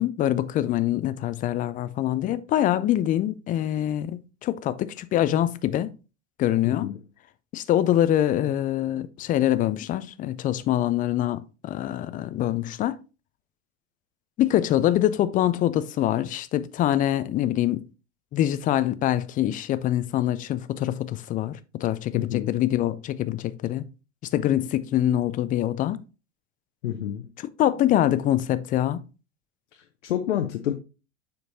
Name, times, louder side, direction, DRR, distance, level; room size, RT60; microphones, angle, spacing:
voice 1, 0.0-5.9 6.4-6.9 7.5-13.0 14.4-17.8 18.3-23.9 24.3-26.0 27.4-29.0, left 12 dB, 25° left, 0.4 m, -24 dB
voice 2, 6.6-7.0 22.1-22.6 26.8-27.3 29.7-30.7, left 11 dB, 70° left, 0.8 m, -29 dB
6.8 x 5.2 x 2.7 m
hypercardioid pair, 85°, 37 cm